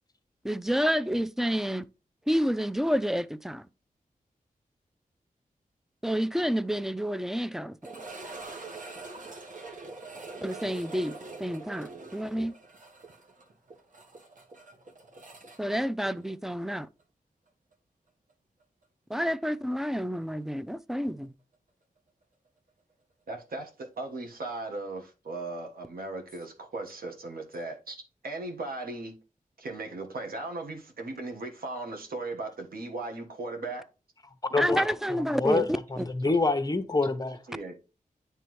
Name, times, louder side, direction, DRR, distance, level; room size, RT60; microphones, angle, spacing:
voice 1, 0.4-1.9 2.3-3.7 6.0-7.8 10.4-12.5 15.6-16.9 19.1-21.3 34.6-35.6 36.0-36.1, equal, 5° right, 0.4 m, -29 dB
sound 1, 7.8-16.7 17.0-17.1 17.7-17.8 20.4-20.5, right 3 dB, 60° right, 1.2 m, -44 dB
voice 2, 23.3-28.0 28.2-29.1 29.6-33.8 37.0-37.1 37.5-37.7, right 2 dB, 90° right, 1.4 m, -37 dB
voice 3, 34.5-34.9 35.3-37.4, left 3 dB, 25° left, 0.8 m, -26 dB
9.5 x 3.4 x 3.1 m
cardioid pair, 60°, 15 cm